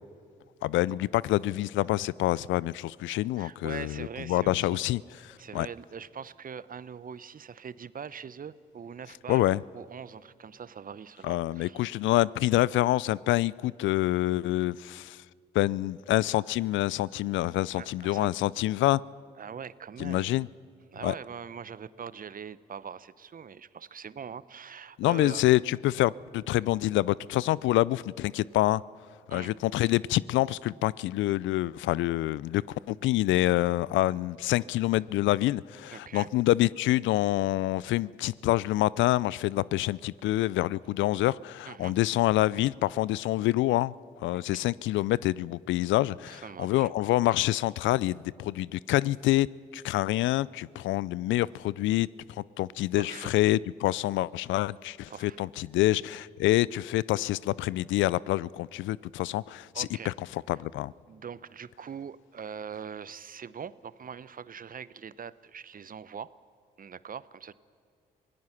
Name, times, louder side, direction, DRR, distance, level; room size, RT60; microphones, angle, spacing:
voice 1, 0.6-5.7 9.3-9.6 11.2-15.2 15.5-19.0 20.0-20.5 21.0-21.1 25.0-28.8 29.3-32.6 32.9-43.9 44.2-49.5 49.7-52.1 52.4-60.9, left 16 dB, 75° left, 23 dB, 0.4 m, -27 dB
voice 2, 3.4-4.8 5.4-12.0 17.8-18.3 19.4-20.3 20.9-25.5 29.3-29.5 35.9-36.3 41.7-42.0 44.3-44.6 46.3-46.9 53.0-53.3 55.1-55.4 59.7-60.1 61.1-66.3 66.8-67.5, right 7 dB, 45° right, 18 dB, 0.8 m, -42 dB
26.0 x 17.5 x 5.9 m, 2.5 s
hypercardioid pair, 45°, 20 cm